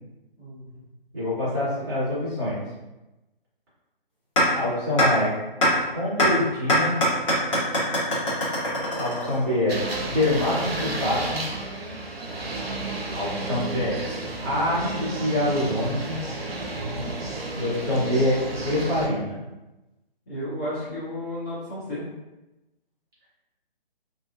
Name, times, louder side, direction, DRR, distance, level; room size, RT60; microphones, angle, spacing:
voice 1, 0.4-0.8 20.3-22.0, left 1 dB, 15° left, -14 dB, 0.6 m, -33 dB
voice 2, 1.1-2.6 4.5-5.3 5.9-6.9 9.0-11.4 13.1-14.0 14.4-16.2 17.6-18.4 18.6-19.4, left 1 dB, 20° right, -10 dB, 1.1 m, -25 dB
sound 1, 4.4-4.5 5.0-5.1 5.6-5.7 6.2-6.3 6.7-9.6, equal, 35° left, 1.1 m, -21 dB
sound 2, 9.7-19.1, right 2 dB, 85° right, 0.6 m, -31 dB
2.7 x 2.4 x 2.4 m, 1.0 s
figure-of-eight pair, 145°, 29 cm